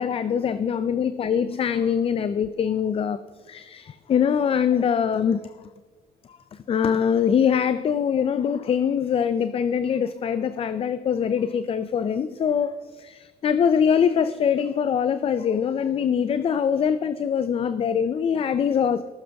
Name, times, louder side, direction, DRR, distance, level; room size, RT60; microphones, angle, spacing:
voice 1, 0.0-3.2 3.5-5.4 6.7-19.1, left 7 dB, 35° left, 13 dB, 0.4 m, -23 dB
19.0 x 6.5 x 3.5 m, 1.3 s
cardioid pair, 110°, 17 cm